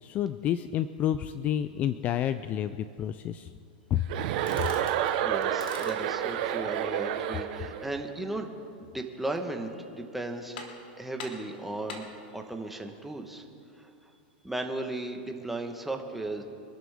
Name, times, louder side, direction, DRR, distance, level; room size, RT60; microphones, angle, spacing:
voice 1, 0.0-3.5 3.9-4.0, left 10 dB, 30° left, 13 dB, 0.4 m, -29 dB
Chuckle chortle, 4.1-7.8, right 10 dB, 55° right, 1.2 m, -29 dB
sound 1, 4.5-5.0 5.5-6.1 9.1-9.6 10.0-10.1 10.6-10.9 11.2-12.2, left 4 dB, 80° left, 2.6 m, -44 dB
voice 2, 5.2-8.5 8.8-10.6 11.0-13.5 13.7-14.1 14.4-16.4, right 2 dB, 5° right, 3 dB, 1.3 m, -36 dB
25.5 x 12.0 x 3.6 m, 2.5 s
supercardioid pair, 140°, 5 cm